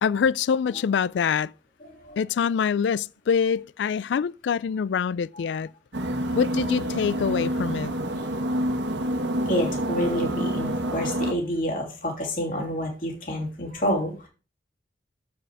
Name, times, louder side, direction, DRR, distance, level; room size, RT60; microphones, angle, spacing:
voice 1, 0.0-1.5 2.2-5.7 6.3-7.9, left 6 dB, 75° left, 0.3 m, -25 dB
voice 2, 1.9-2.2 9.4-14.3, equal, 50° left, 2.9 m, -28 dB
sound 1, 5.9-11.3, right 1 dB, 75° right, 1.3 m, -27 dB
7.6 x 7.1 x 4.7 m
head